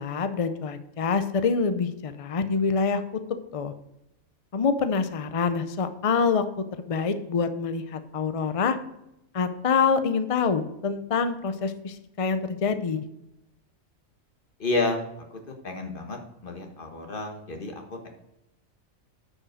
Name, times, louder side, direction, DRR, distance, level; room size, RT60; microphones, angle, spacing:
voice 1, 0.0-3.0 3.5-3.7 4.5-6.4 6.9-8.8 9.3-13.0, left 5 dB, 55° left, 9 dB, 0.3 m, -26 dB
voice 2, 14.6-18.1, left 2 dB, 40° left, 3 dB, 1.5 m, -31 dB
9.7 x 5.4 x 6.3 m, 0.87 s
omnidirectional pair, 1.4 m